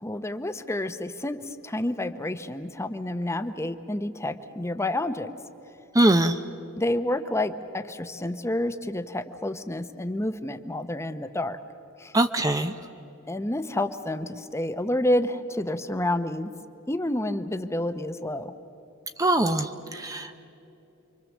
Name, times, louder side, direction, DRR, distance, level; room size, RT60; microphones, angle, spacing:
voice 1, 0.0-5.3 6.8-11.6 12.0-12.1 13.3-16.5 16.9-18.5, left 1 dB, 15° left, 10 dB, 0.8 m, -29 dB
voice 2, 5.9-6.4 12.1-12.7 19.2-20.4, right 1 dB, 15° right, 8 dB, 0.6 m, -22 dB
29.0 x 24.0 x 7.3 m, 2.9 s
head